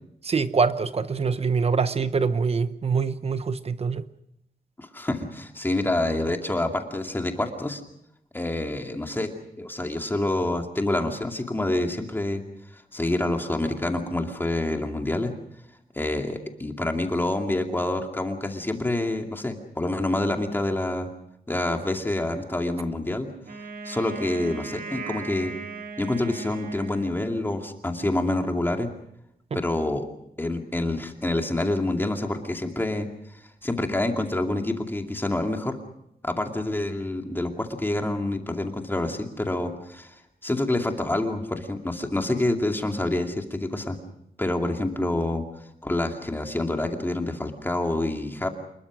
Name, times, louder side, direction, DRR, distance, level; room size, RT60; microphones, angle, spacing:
voice 1, 0.2-4.0 29.5-29.6, right 5 dB, 40° right, 0.9 m, -24 dB
voice 2, 4.8-7.8 8.3-12.4 12.7-15.3 15.9-21.1 21.5-23.3 23.8-25.5 26.0-28.9 29.5-30.1 30.4-35.8 36.2-44.0 44.4-45.4 45.8-48.5, left 1 dB, 15° left, 2.4 m, -27 dB
Wind instrument woodwind instrument, 23.4-27.7, right 3 dB, 65° right, 2.3 m, -38 dB
27.0 x 21.5 x 6.2 m
wide cardioid pair, 165°, 16 cm